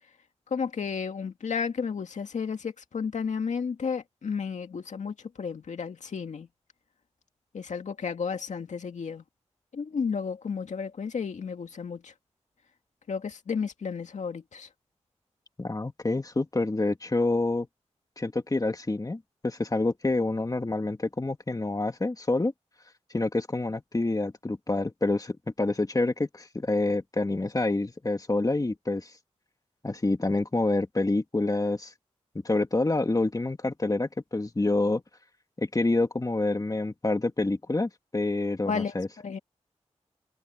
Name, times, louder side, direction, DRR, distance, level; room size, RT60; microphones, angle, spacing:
voice 1, 0.5-6.5 7.5-9.2 9.7-12.1 13.1-14.7 38.7-39.4, left 6 dB, 80° left, 2.1 m, -32 dB
voice 2, 15.6-17.7 18.2-22.5 23.1-29.1 29.8-31.9 32.4-35.0 35.6-39.1, left 2 dB, 30° left, 2.3 m, -27 dB
cardioid pair, 55°, 12 cm